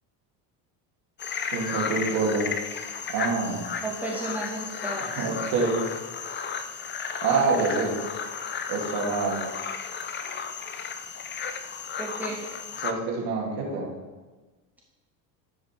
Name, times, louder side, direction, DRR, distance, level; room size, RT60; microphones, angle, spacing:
sound 1, 1.2-12.9, left 6 dB, 25° left, 0.6 m, -34 dB
voice 1, 1.5-2.5 3.1-3.6 5.2-5.8 7.2-8.0 8.7-9.4 12.8-13.9, right 4 dB, 80° right, -1 dB, 2.6 m, -26 dB
voice 2, 3.8-5.3 12.0-12.5, right 2 dB, 5° right, -5 dB, 2.7 m, -33 dB
13.0 x 5.0 x 4.5 m, 1.3 s
supercardioid pair, 110°, 41 cm